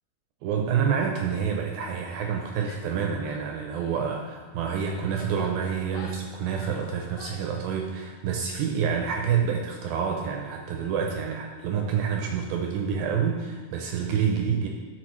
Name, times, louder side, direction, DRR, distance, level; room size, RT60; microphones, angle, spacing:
voice 1, 0.4-14.7, right 7 dB, 80° right, 2 dB, 2.1 m, -28 dB
Female speech woman speaking / Yell, 2.6-3.0 3.3-4.1 4.8-7.6, left 5 dB, 90° left, 2.8 m, -48 dB
12.5 x 4.2 x 3.1 m, 1.4 s
omnidirectional pair, 4.7 m